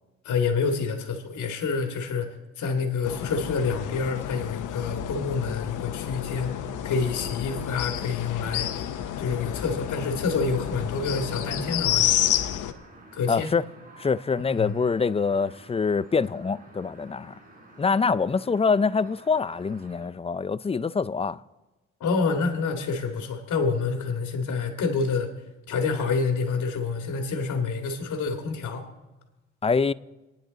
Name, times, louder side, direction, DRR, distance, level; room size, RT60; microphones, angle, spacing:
voice 1, 0.2-2.3 2.6-6.5 6.8-8.8 9.2-12.3 13.1-13.5 14.6-14.8 22.0-25.3 25.7-28.9, left 4 dB, 70° left, 2.1 m, -27 dB
sound 1, 3.0-12.7, left 11 dB, 85° left, 1.0 m, -30 dB
sound 2, 6.0-20.1, right 2 dB, 30° right, 4.2 m, -51 dB
voice 2, 13.3-13.6 14.0-17.3 17.8-21.4 29.6-29.9, left 5 dB, 20° left, 0.4 m, -25 dB
26.5 x 10.0 x 4.0 m
cardioid pair, 90°, 30 cm